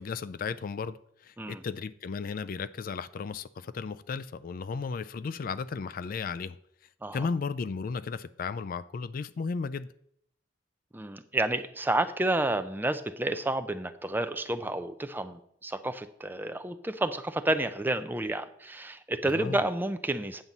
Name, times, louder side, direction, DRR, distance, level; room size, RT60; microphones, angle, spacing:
voice 1, 0.0-6.6 7.1-9.9 19.2-19.6, left 5 dB, 50° left, 0.3 m, -35 dB
voice 2, 10.9-20.4, right 1 dB, 10° right, 0.5 m, -30 dB
9.0 x 4.0 x 7.2 m
head